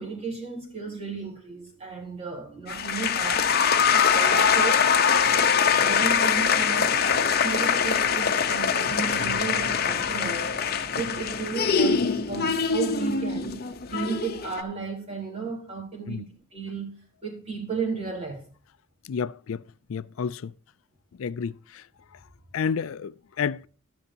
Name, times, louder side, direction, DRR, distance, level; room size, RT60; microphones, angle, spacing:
voice 1, 0.0-3.5 3.9-4.9 5.8-7.0 7.4-10.5 11.0-16.3 16.5-18.4, right 5 dB, 30° right, 4.0 m, -34 dB
sound 1, 2.7-14.6, left 6 dB, 45° left, 1.0 m, -23 dB
voice 2, 19.1-19.6 19.9-20.5 21.2-21.8 22.5-23.7, left 6 dB, 75° left, 0.4 m, -30 dB
13.0 x 10.5 x 2.9 m
head